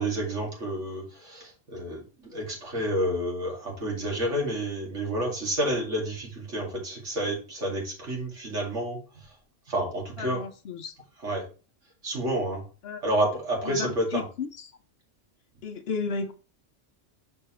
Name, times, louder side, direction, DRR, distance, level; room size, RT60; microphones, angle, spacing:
voice 1, 0.0-9.0 9.7-10.4 11.2-11.5 12.0-12.6 13.0-14.3, right 1 dB, 70° right, 2.6 m, -29 dB
voice 2, 10.2-10.9 12.8-13.0 13.6-14.7 15.6-16.3, left 4 dB, 60° left, 0.8 m, -33 dB
6.5 x 5.3 x 3.0 m
omnidirectional pair, 1.3 m